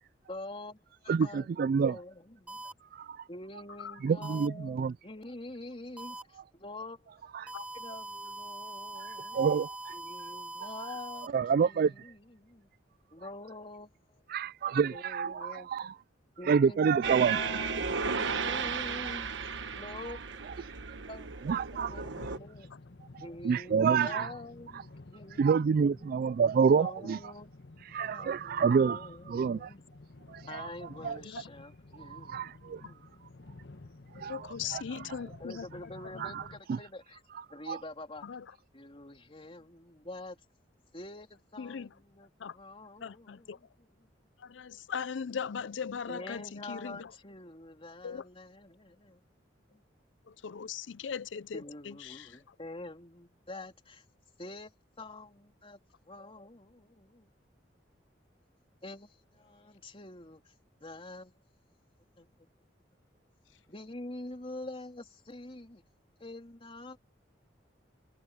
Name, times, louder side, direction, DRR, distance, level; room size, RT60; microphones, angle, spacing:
voice 1, 0.3-2.6 3.3-7.1 7.4-9.4 9.9-11.3 11.6-12.7 13.1-14.3 14.9-15.7 16.4-21.3 21.8-22.7 23.2-26.2 26.7-27.5 27.8-29.8 30.5-33.1 35.2-37.2 37.5-38.3 38.7-40.4 40.9-44.1 46.1-49.2 49.7-49.8 51.5-54.0 54.4-55.8 56.0-57.3 58.8-60.5 60.8-61.3 62.2-62.3 63.7-65.8 66.2-67.0, left 2 dB, 30° left, 3.6 m, -46 dB
voice 2, 1.1-2.0 2.9-3.2 4.0-4.9 7.3-7.5 8.9-10.0 11.3-12.1 14.3-16.0 16.4-17.7 18.4-18.5 19.0-19.3 20.9-21.0 21.5-22.0 23.4-24.3 25.4-27.2 27.9-29.7 30.3-30.7 31.0-31.2 32.0-32.8 34.2-35.2 36.2-36.4 36.7-36.8 37.3-37.8, right 6 dB, 55° right, 0.3 m, -28 dB
sound 1, 2.5-2.7 4.2-4.5 6.0-6.2 7.5-11.3, right 2 dB, 10° right, 1.4 m, -42 dB
sound 2, 17.0-22.4, right 5 dB, 80° right, 1.2 m, -35 dB
sound 3, 21.8-36.6, left 2 dB, 65° left, 1.3 m, -52 dB
voice 3, 34.3-35.7 38.3-38.4 41.6-41.9 42.4-42.5 43.0-43.6 44.5-46.4 46.7-47.0 48.0-48.2 50.4-52.2, left 7 dB, 85° left, 0.5 m, -38 dB
head